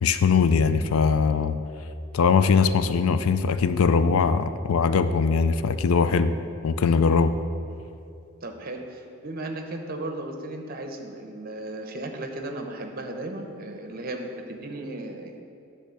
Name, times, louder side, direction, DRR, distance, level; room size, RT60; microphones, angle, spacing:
voice 1, 0.0-1.6 2.1-6.3 6.6-7.3, left 5 dB, 80° left, 11 dB, 0.4 m, -21 dB
voice 2, 8.4-15.4, right 2 dB, 45° right, 4 dB, 0.8 m, -35 dB
10.5 x 3.7 x 6.9 m, 2.6 s
head